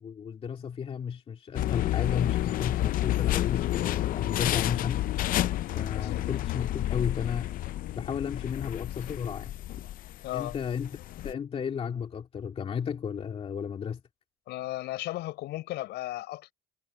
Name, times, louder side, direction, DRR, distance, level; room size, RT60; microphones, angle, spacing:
voice 1, 0.0-5.1 5.7-7.5 8.0-9.6 10.3-11.0 11.2-14.0, left 7 dB, 35° left, 2.4 m, -33 dB
sound 1, 1.5-11.3, left 14 dB, 55° left, 0.5 m, -30 dB
voice 2, 5.9-6.2 10.2-10.6 14.5-16.5, left 16 dB, 75° left, 4.9 m, -35 dB
cardioid pair, 155°, 18 cm